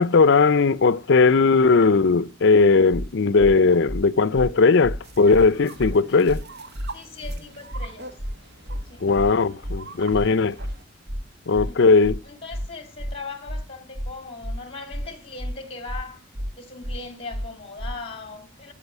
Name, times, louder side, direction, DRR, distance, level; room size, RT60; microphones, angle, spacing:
voice 1, 0.0-6.4 9.0-10.6 11.5-12.2, left 4 dB, 60° left, 0.5 m, -18 dB
sound 1, 2.9-3.1 3.4-3.5 3.9-4.0 4.3-4.5 4.8-5.0 5.3-5.5 5.8-5.9 6.3-6.4 6.7-6.9 7.2-7.4 7.7-7.9 8.2-8.3 8.7-8.8 9.1-9.3 9.6-9.8 10.1-10.3 10.6-10.7 11.1-11.2 11.5-11.7 12.0-12.2 12.5-12.7 13.0-13.1 13.5-13.6 13.9-14.1 14.4-14.6 14.9-15.1 15.4-15.5 15.9-16.0 16.3-16.5 16.8-17.0 17.3-17.5 17.8-17.9, equal, 40° right, 0.8 m, -30 dB
sound 2, 5.0-10.8, right 3 dB, 60° right, 1.6 m, -43 dB
voice 2, 6.9-8.2 8.8-9.1 11.6-11.9 12.2-16.2 16.6-18.7, left 3 dB, 30° left, 2.7 m, -39 dB
13.5 x 5.5 x 8.1 m
head